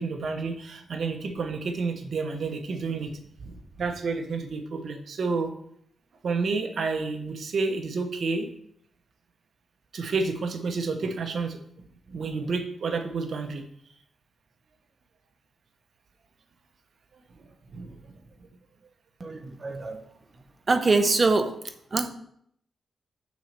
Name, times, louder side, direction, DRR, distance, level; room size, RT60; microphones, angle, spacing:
voice 1, 0.0-5.5 6.2-8.5 9.9-11.6 12.1-13.6 17.4-18.0, right 4 dB, 60° right, 6 dB, 0.9 m, -30 dB
voice 2, 19.2-20.0 20.7-21.6 21.9-22.1, right 3 dB, 35° right, 8 dB, 0.7 m, -23 dB
6.3 x 4.2 x 5.1 m, 0.69 s
cardioid pair, 95°, 0 cm